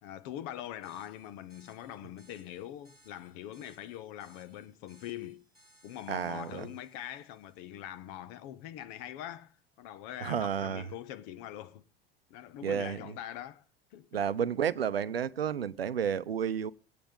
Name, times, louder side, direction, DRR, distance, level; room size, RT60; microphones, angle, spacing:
voice 1, 0.0-5.5 5.8-11.8 12.3-13.6 13.9-14.2, left 12 dB, 50° left, 1.0 m, -43 dB
sound 1, 0.8-8.0, equal, 85° left, 4.0 m, -65 dB
voice 2, 6.1-6.7 10.2-10.8 12.6-13.1 14.1-16.7, right 8 dB, 85° right, 0.7 m, -31 dB
23.0 x 8.9 x 3.7 m
figure-of-eight pair, 75°, 29 cm